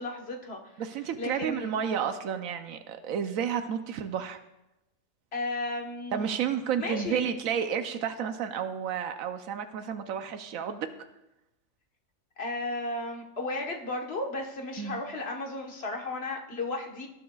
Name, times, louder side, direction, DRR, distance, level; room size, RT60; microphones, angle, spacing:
voice 1, 0.0-0.8 1.2-1.7 5.3-6.3 6.8-7.3 12.4-17.1, left 2 dB, 50° left, 1 dB, 1.5 m, -34 dB
voice 2, 0.8-4.4 6.1-10.9 14.8-15.0, right 8 dB, 90° right, 8 dB, 1.1 m, -31 dB
18.5 x 9.7 x 2.3 m, 0.92 s
omnidirectional pair, 1.4 m